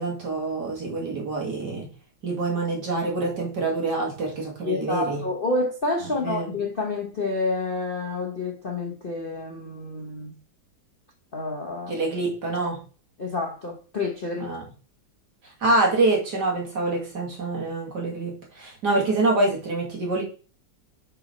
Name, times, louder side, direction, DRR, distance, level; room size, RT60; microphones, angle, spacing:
voice 1, 0.0-1.9 2.2-5.2 6.1-6.5 11.9-12.8 14.4-14.7 15.6-20.2, right 2 dB, 60° right, 2.7 m, -26 dB
voice 2, 4.6-10.3 11.3-12.0 13.2-14.5, left 3 dB, 40° left, 0.8 m, -29 dB
5.9 x 5.5 x 5.1 m
omnidirectional pair, 2.1 m